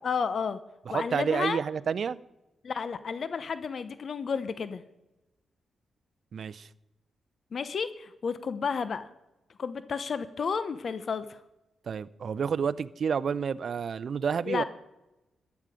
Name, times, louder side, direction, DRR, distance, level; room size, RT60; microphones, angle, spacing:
voice 1, 0.0-0.6 0.9-1.6 2.6-4.8 7.5-9.1 9.6-11.4 14.5-14.6, left 5 dB, 55° left, 13 dB, 0.7 m, -31 dB
voice 2, 0.9-2.2 6.3-6.7 11.9-14.6, right 6 dB, 60° right, 17 dB, 0.5 m, -29 dB
14.5 x 11.0 x 5.0 m, 0.98 s
cardioid pair, 75°, 0 cm